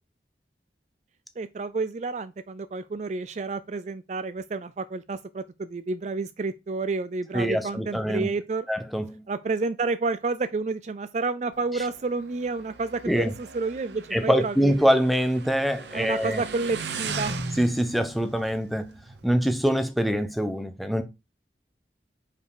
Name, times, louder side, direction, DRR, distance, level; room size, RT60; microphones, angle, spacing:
voice 1, 1.4-8.7 9.3-14.9 15.9-17.4, right 3 dB, 40° right, 0.3 m, -30 dB
voice 2, 7.3-8.3 8.7-9.2 13.1-13.3 14.1-16.4 17.6-18.9 19.2-21.0, equal, ahead, 0.8 m, -24 dB
Motorcycle, 11.5-19.8, right 4 dB, 80° right, 0.9 m, -38 dB
5.4 x 5.1 x 4.9 m
head